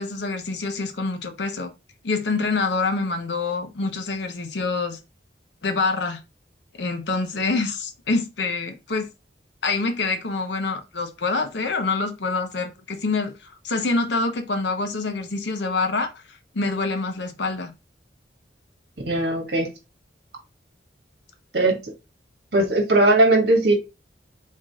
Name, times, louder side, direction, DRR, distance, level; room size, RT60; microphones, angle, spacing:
voice 1, 0.0-1.7 2.0-5.0 5.6-6.2 6.8-9.1 9.6-17.7, left 3 dB, 75° left, 0.8 m, -26 dB
voice 2, 19.1-19.7 21.5-21.8 22.5-23.7, right 2 dB, 60° right, 1.5 m, -18 dB
3.7 x 3.7 x 3.5 m
head